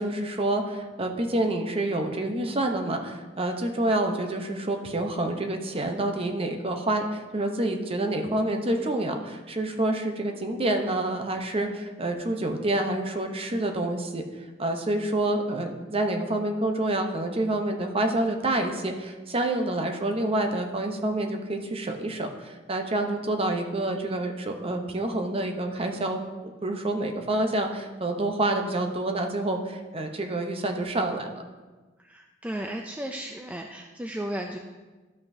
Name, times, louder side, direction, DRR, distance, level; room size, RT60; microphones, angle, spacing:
voice 1, 0.0-14.2 14.6-31.4, right 1 dB, 30° right, 4 dB, 0.7 m, -28 dB
voice 2, 32.0-34.6, right 1 dB, 10° right, 2 dB, 0.3 m, -34 dB
12.5 x 5.7 x 2.7 m, 1.3 s
head